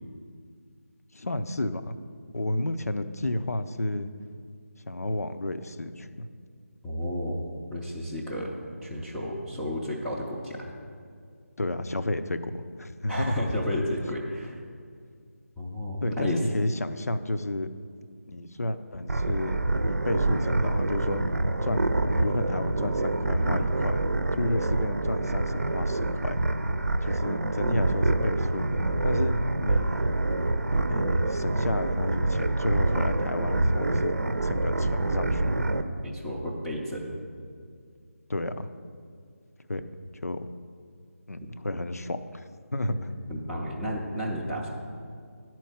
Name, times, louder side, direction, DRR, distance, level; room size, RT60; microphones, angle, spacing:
voice 1, 1.1-2.0 2.3-4.1 4.9-6.3 11.6-13.4 16.0-17.7 18.3-19.6 19.9-21.9 22.2-24.1 24.4-26.4 27.0-30.0 30.9-35.7 38.3-38.7 39.7-39.8 40.1-40.4 41.3-42.4 42.7-42.9, left 1 dB, 75° left, 10 dB, 0.6 m, -31 dB
voice 2, 6.8-7.4 7.7-8.5 8.8-10.7 13.1-14.6 15.6-16.4 36.0-37.2 41.4-41.5 43.3-44.7, left 1 dB, 5° left, -6 dB, 0.4 m, -32 dB
sound 1, 19.1-35.8, right 2 dB, 75° right, 0.6 m, -26 dB
10.5 x 4.5 x 7.2 m, 2.1 s
figure-of-eight pair, 160°, 8 cm